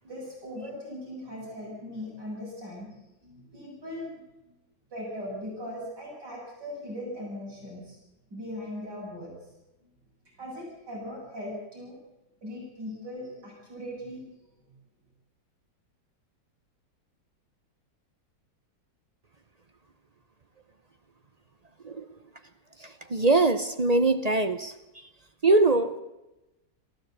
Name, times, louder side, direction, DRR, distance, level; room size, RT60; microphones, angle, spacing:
voice 1, 0.0-2.9 3.2-4.2 4.5-4.6 4.9-8.0 8.3-9.3 10.2-12.0 12.4-14.7, left 1 dB, 65° right, -4 dB, 8.5 m, -39 dB
voice 2, 23.1-24.7 25.4-26.0, right 2 dB, 45° right, 10 dB, 0.5 m, -22 dB
22.5 x 14.5 x 8.2 m, 0.97 s
omnidirectional pair, 2.0 m